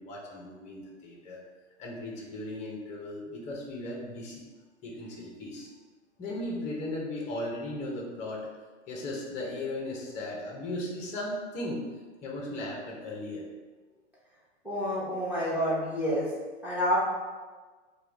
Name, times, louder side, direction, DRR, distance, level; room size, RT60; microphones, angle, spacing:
voice 1, 0.0-1.4 1.8-4.4 4.8-5.7 6.2-8.4 8.9-11.8 12.2-13.5, left 1 dB, 20° left, -1 dB, 0.8 m, -36 dB
voice 2, 14.6-16.3 16.6-17.0, equal, 5° right, -8 dB, 1.1 m, -28 dB
4.6 x 2.3 x 3.4 m, 1.3 s
hypercardioid pair, 125°, 36 cm